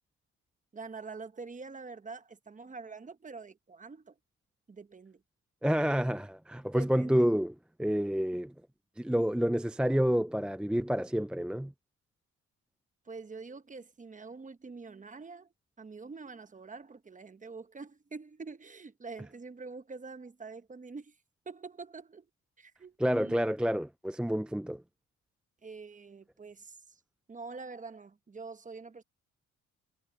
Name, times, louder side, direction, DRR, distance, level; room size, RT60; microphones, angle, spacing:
voice 1, 0.7-4.2 4.7-5.2 6.7-7.3 13.0-15.5 15.8-21.2 21.4-22.3 22.6-23.4 25.6-27.0 27.3-29.0, right 4 dB, 25° right, 1.1 m, -45 dB
voice 2, 5.6-7.5 7.8-8.5 9.0-11.7 23.0-24.8, equal, 5° right, 0.5 m, -28 dB
cardioid pair, 90°, 30 cm